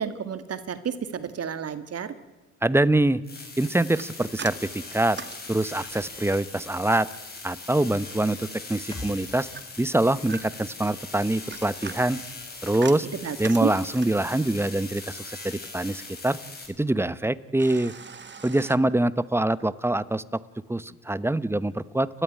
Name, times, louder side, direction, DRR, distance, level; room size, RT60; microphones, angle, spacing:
voice 1, 0.0-2.1 13.2-13.7, right 7 dB, 55° right, 12 dB, 1.8 m, -31 dB
voice 2, 2.6-3.2 3.6-5.2 5.5-7.1 7.4-9.5 9.8-12.2 12.6-13.1 13.4-16.4 16.8-17.9 18.4-20.4 20.7-22.2, right 1 dB, 10° right, 17 dB, 0.9 m, -24 dB
sound 1, 3.2-16.7, left 3 dB, 30° left, 6.3 m, -41 dB
sound 2, 3.9-6.2 9.6-10.8 11.3-14.3 17.6-18.8, right 6 dB, 35° right, 1.7 m, -41 dB
sound 3, 8.9-12.4 12.7-12.8, left 2 dB, 15° left, 2.1 m, -46 dB
30.0 x 12.5 x 9.8 m, 1.1 s
cardioid pair, 90°, 30 cm